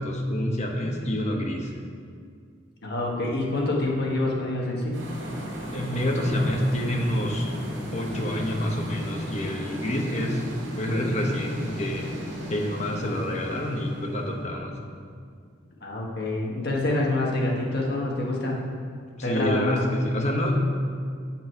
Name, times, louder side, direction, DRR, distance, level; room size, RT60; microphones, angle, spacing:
voice 1, 0.0-1.7 5.7-7.5 7.9-10.5 10.8-12.1 12.5-14.8 19.2-20.6, left 1 dB, 35° left, 1 dB, 0.9 m, -27 dB
voice 2, 2.8-5.0 15.8-18.6 19.2-19.8, left 2 dB, 55° left, -2 dB, 1.4 m, -26 dB
sound 1, 4.9-15.5, equal, 70° right, 1.8 m, -35 dB
8.3 x 5.9 x 4.6 m, 2.1 s
head